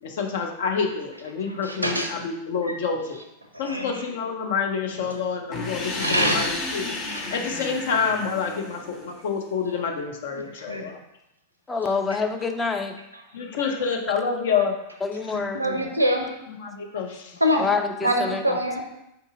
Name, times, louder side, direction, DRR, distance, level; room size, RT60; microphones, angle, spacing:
voice 1, 0.0-3.2 3.6-11.0 13.3-14.8 16.5-17.4, left 5 dB, 55° left, 3 dB, 0.6 m, -28 dB
voice 2, 1.6-2.1 3.6-4.0 6.0-6.4 7.1-7.2 10.3-10.4 10.7-10.8 15.3-16.3 17.4-17.7 18.0-18.8, equal, 85° right, 3 dB, 0.5 m, -24 dB
sound 1, 5.5-9.3, left 2 dB, 30° left, 1.0 m, -32 dB
voice 3, 11.7-13.0 15.0-15.6 17.6-18.6, left 4 dB, 15° left, 5 dB, 0.4 m, -26 dB
4.6 x 2.7 x 3.6 m, 0.85 s
figure-of-eight pair, 90°, 0 cm